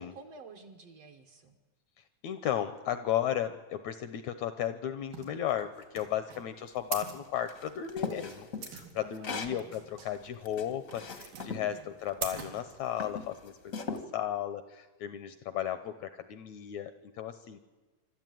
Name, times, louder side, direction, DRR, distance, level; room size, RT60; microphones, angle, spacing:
voice 1, 0.0-1.6 9.0-9.8 11.4-11.9, right 3 dB, 60° right, 5 dB, 1.8 m, -51 dB
voice 2, 2.2-17.6, left 10 dB, 75° left, 12 dB, 1.7 m, -35 dB
sound 1, 5.1-13.3, right 7 dB, 85° right, 4.1 m, -44 dB
sound 2, 7.5-9.6 10.1-11.7 12.4-12.6 13.0-14.0, left 5 dB, 55° left, 0.9 m, -38 dB
25.0 x 13.0 x 9.2 m, 1.2 s
omnidirectional pair, 4.0 m